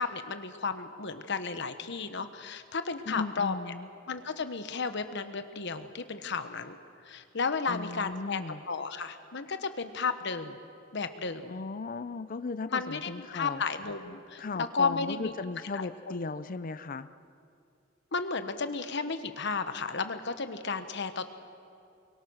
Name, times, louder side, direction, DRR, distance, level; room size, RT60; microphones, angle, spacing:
voice 1, 0.0-3.5 4.1-6.8 7.0-8.4 8.7-10.6 10.9-11.5 12.7-14.4 14.7-15.3 15.7-15.9 18.1-21.3, left 4 dB, 60° left, 9 dB, 1.2 m, -33 dB
voice 2, 3.1-3.9 7.7-8.6 11.5-13.6 14.4-17.1, left 3 dB, 45° left, 13 dB, 0.5 m, -36 dB
24.0 x 23.0 x 6.4 m, 2.5 s
head